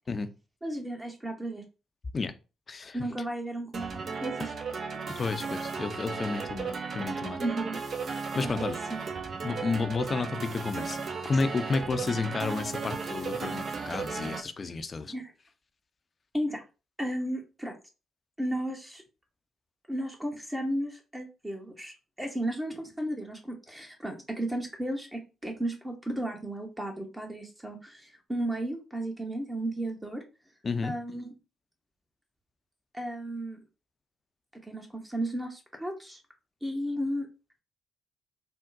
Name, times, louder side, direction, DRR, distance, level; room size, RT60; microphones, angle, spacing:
voice 1, 0.6-1.6 2.9-4.5 7.4-7.8 8.6-8.7 8.9-9.0 15.1-15.3 16.3-16.6 17.0-17.7 18.4-19.0 19.9-30.2 30.8-31.3 32.9-33.6 34.7-36.2 36.6-37.3, right 1 dB, 15° right, 0.9 m, -34 dB
voice 2, 2.7-3.1 5.2-7.4 8.1-8.8 9.4-15.1 30.6-30.9, left 4 dB, 40° left, 0.5 m, -31 dB
sound 1, 3.7-14.4, right 5 dB, 50° right, 0.5 m, -35 dB
3.6 x 2.1 x 2.6 m
hypercardioid pair, 40°, 0 cm